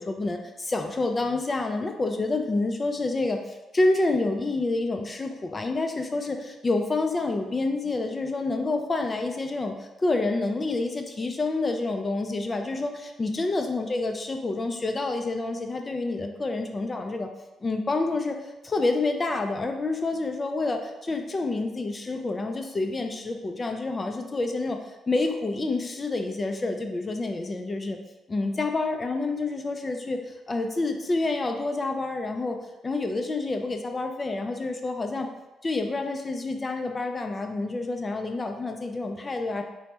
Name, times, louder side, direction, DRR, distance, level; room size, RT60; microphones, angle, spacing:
voice 1, 0.0-17.3 17.6-24.8 25.1-28.0 28.3-32.6 32.8-35.3 35.6-39.6, left 2 dB, 30° left, 4 dB, 0.3 m, -28 dB
3.2 x 2.1 x 2.8 m, 1.0 s
cardioid pair, 90°, 0 cm